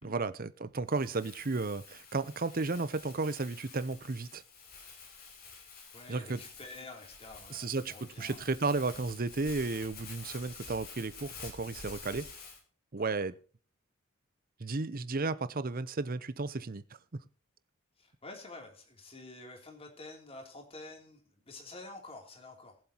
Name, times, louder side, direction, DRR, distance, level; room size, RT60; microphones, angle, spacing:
voice 1, 0.0-4.4 6.1-6.4 7.5-12.3 12.9-13.3 14.6-16.8 17.1-17.2, right 3 dB, 45° right, 0.7 m, -33 dB
Crumpling crinkling, 0.9-12.6, left 4 dB, 50° left, 3.6 m, -49 dB
voice 2, 5.9-8.5 13.0-13.1 18.0-22.8, left 2 dB, 30° left, 3.1 m, -49 dB
21.5 x 7.5 x 2.9 m
head